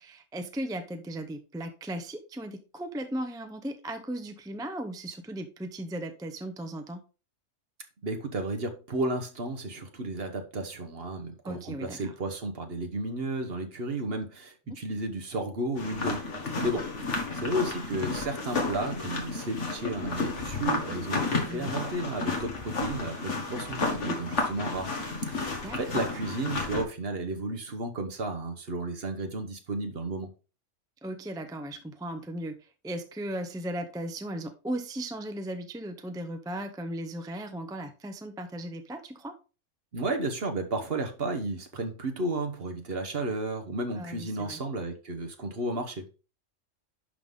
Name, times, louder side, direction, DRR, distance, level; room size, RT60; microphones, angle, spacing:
voice 1, 0.0-7.0 11.4-12.0 21.4-21.8 25.6-26.1 31.0-39.4 43.9-44.6, right 1 dB, 5° right, 0.6 m, -37 dB
voice 2, 8.0-16.2 16.6-24.9 25.3-30.3 39.9-46.1, right 2 dB, 50° right, 1.3 m, -33 dB
sound 1, 15.8-26.8, left 3 dB, 65° left, 2.1 m, -32 dB
11.0 x 3.9 x 3.7 m
omnidirectional pair, 1.3 m